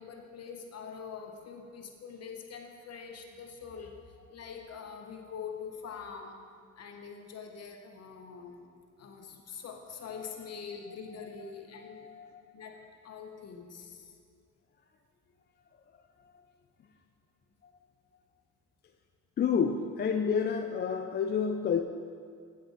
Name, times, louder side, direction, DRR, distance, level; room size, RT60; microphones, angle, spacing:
voice 1, 0.0-6.4 6.8-8.7 9.0-12.1 12.5-14.1, left 6 dB, 55° left, 3 dB, 1.1 m, -44 dB
voice 2, 11.9-12.3 19.4-21.8, left 6 dB, 35° left, 5 dB, 0.4 m, -29 dB
8.1 x 7.7 x 3.9 m, 2.1 s
cardioid pair, 90°, 30 cm